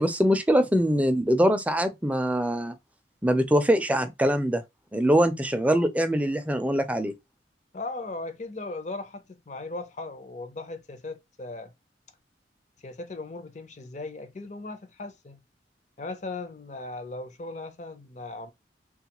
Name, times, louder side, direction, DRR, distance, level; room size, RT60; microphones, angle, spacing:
voice 1, 0.0-2.7 3.2-4.6 4.9-7.1, equal, 10° right, 0.4 m, -23 dB
voice 2, 7.7-11.7 12.8-15.4 16.0-18.5, left 2 dB, 40° left, 0.6 m, -38 dB
3.2 x 2.3 x 2.9 m
head